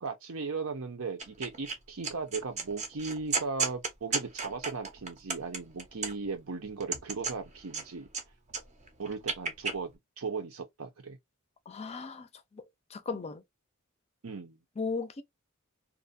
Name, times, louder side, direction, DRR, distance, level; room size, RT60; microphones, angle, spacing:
voice 1, 0.0-8.1 9.0-9.9 10.2-11.2 13.1-13.2 14.2-14.6, right 4 dB, 75° right, 0.8 m, -37 dB
sound 1, 1.2-1.7 2.0-6.4 6.8-8.2 8.5-9.7, right 4 dB, 35° right, 0.6 m, -34 dB
voice 2, 11.7-12.7 12.9-13.4 14.8-15.2, left 4 dB, 30° left, 0.5 m, -36 dB
2.6 x 2.2 x 2.5 m
head